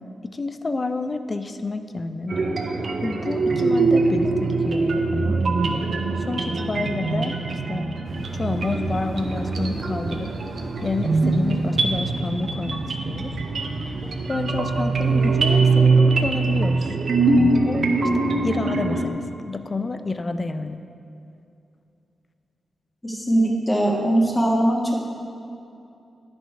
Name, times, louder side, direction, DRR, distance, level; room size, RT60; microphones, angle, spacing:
voice 1, 0.2-2.4 3.0-5.4 6.2-7.4 7.7-7.9 8.3-10.3 10.8-13.4 14.3-17.0 17.6-17.8 18.1-20.8, left 3 dB, 35° left, 9 dB, 0.5 m, -29 dB
sound 1, 2.3-19.1, right 3 dB, 60° right, 0.7 m, -22 dB
sound 2, 8.0-15.9, equal, 5° right, 1.6 m, -37 dB
voice 2, 23.0-24.8, right 1 dB, 20° left, -2 dB, 1.7 m, -20 dB
9.8 x 6.2 x 4.7 m, 2.7 s
cardioid pair, 70°, 0 cm